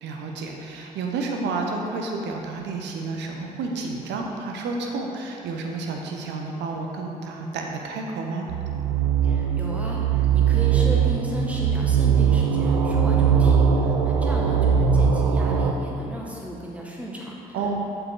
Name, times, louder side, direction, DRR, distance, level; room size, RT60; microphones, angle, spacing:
voice 1, 0.0-8.5 17.5-17.7, right 3 dB, 65° right, 1 dB, 1.0 m, -30 dB
sound 1, 8.5-15.7, right 7 dB, 90° right, 0.5 m, -20 dB
voice 2, 9.2-17.6, right 1 dB, 5° right, -4 dB, 1.7 m, -35 dB
7.7 x 7.1 x 3.9 m, 2.8 s
hypercardioid pair, 50°, 20 cm